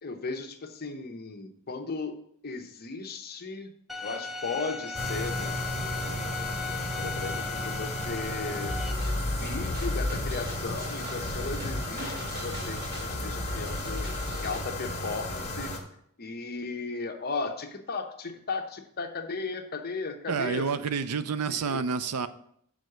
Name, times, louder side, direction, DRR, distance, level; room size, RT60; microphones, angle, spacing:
voice 1, 0.0-3.7 4.0-6.2 6.8-8.8 9.4-14.1 14.4-15.7 16.2-20.8 21.5-21.8, left 4 dB, 45° left, 5 dB, 0.9 m, -36 dB
Bowed string instrument, 3.9-8.9, left 4 dB, ahead, 0.8 m, -37 dB
sound 1, 4.9-15.8, left 1 dB, 30° left, 1.5 m, -34 dB
sound 2, 8.6-14.6, left 1 dB, 40° right, 3.6 m, -35 dB
voice 2, 20.3-22.3, right 5 dB, 80° right, 13 dB, 0.5 m, -29 dB
6.3 x 4.7 x 6.5 m, 0.67 s
head